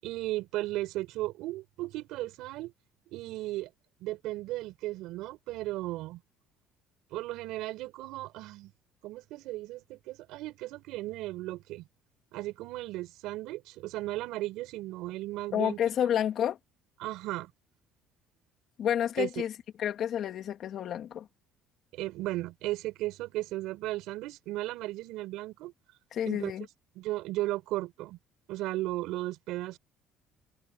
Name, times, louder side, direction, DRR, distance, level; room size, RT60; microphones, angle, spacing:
voice 1, 0.0-2.7 3.1-3.7 4.0-6.2 7.1-8.7 9.0-11.8 12.3-15.8 17.0-17.5 19.2-19.3 21.9-25.7 26.2-26.5 26.9-28.2 28.5-29.8, right 17 dB, 70° right, 6.6 m, -35 dB
voice 2, 15.5-16.6 18.8-19.5 19.8-21.3 26.1-26.6, left 10 dB, 45° left, 3.2 m, -29 dB
cardioid pair, 155°, 0 cm